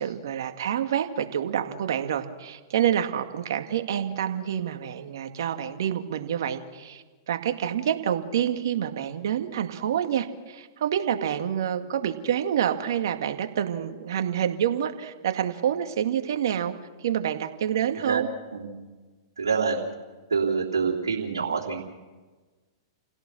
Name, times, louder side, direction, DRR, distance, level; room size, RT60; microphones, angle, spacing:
voice 1, 0.0-16.7 17.0-18.3, right 9 dB, 70° right, 6 dB, 2.1 m, -27 dB
voice 2, 19.4-19.8 20.3-21.8, right 5 dB, 85° right, -6 dB, 3.5 m, -26 dB
30.0 x 17.0 x 6.3 m, 1.3 s
hypercardioid pair, 115°, 2 cm